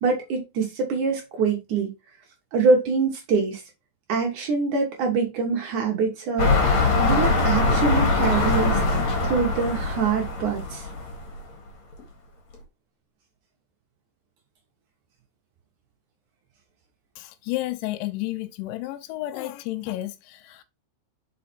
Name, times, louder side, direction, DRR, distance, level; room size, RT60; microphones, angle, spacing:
voice 1, 0.0-1.9 2.5-3.6 4.1-6.7 7.0-10.9, right 4 dB, 75° right, 1.8 m, -24 dB
sound 1, 6.4-11.4 12.0-12.1, left 3 dB, 50° left, 2.4 m, -22 dB
voice 2, 17.2-20.6, left 16 dB, 90° left, 3.0 m, -31 dB
5.7 x 5.2 x 4.3 m
omnidirectional pair, 5.3 m